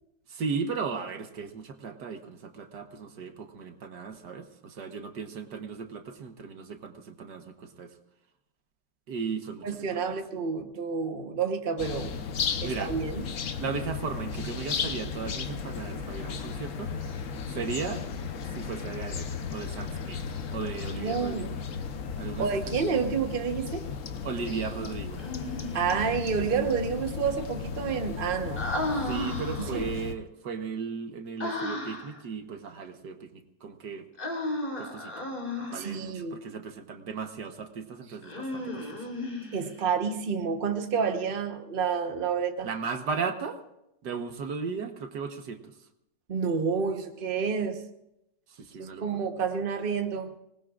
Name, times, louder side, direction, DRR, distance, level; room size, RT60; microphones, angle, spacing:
voice 1, 0.3-7.9 9.1-10.2 12.6-12.9 13.6-16.9 17.5-18.0 18.5-20.2 20.5-21.5 22.2-22.7 24.2-25.2 29.1-34.1 34.8-35.1 35.6-39.1 42.6-43.6 44.0-45.6 48.5-49.2, right 5 dB, 70° right, 6 dB, 1.7 m, -36 dB
voice 2, 9.6-12.1 12.6-13.3 21.0-21.6 22.4-23.9 25.7-28.6 29.6-29.8 35.7-36.4 39.5-42.7 46.3-47.8 48.8-50.3, right 6 dB, 35° right, 5 dB, 1.2 m, -29 dB
sound 1, 11.8-30.1, left 6 dB, 55° left, 1.1 m, -35 dB
Human voice, 25.2-26.1 28.6-29.9 31.4-32.2 34.2-36.0 38.2-39.8, left 1 dB, 30° left, 3.6 m, -34 dB
25.5 x 19.5 x 2.5 m, 0.84 s
omnidirectional pair, 1.9 m